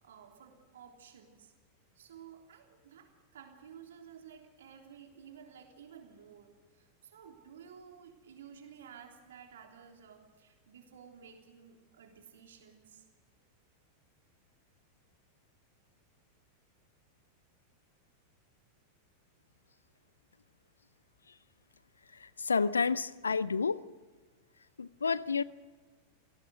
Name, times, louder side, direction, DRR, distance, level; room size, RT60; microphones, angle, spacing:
voice 1, 0.0-1.5 2.0-13.1, right 7 dB, 60° right, 3.4 m, -54 dB
voice 2, 22.4-23.8 24.8-25.4, left 5 dB, 75° left, 0.7 m, -29 dB
27.5 x 18.0 x 6.5 m
figure-of-eight pair, 90°, 0 cm